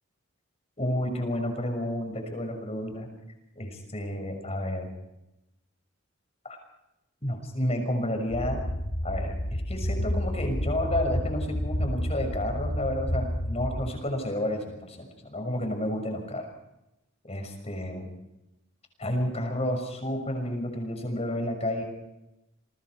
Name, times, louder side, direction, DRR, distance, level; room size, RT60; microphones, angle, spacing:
voice 1, 0.8-3.1 3.6-4.9 7.2-8.6 9.0-16.5 17.2-18.1 19.0-21.8, left 1 dB, 30° left, 5 dB, 6.1 m, -31 dB
sound 1, 8.3-13.8, equal, 70° left, 4.4 m, -30 dB
29.5 x 23.5 x 4.8 m, 0.92 s
head